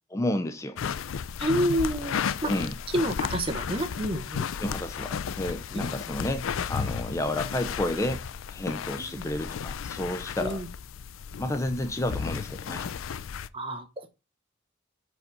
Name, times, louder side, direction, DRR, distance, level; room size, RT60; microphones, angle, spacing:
voice 1, 0.1-0.8 2.5-2.8 4.5-10.6 11.4-12.9, left 1 dB, 15° left, 0.4 m, -31 dB
sound 1, 0.8-13.5, left 7 dB, 85° left, 0.4 m, -34 dB
voice 2, 1.4-2.5 2.9-4.4 5.7-5.9 9.0-9.1 10.4-10.7 13.5-14.1, right 1 dB, 25° right, 0.9 m, -29 dB
5.1 x 4.8 x 5.3 m
head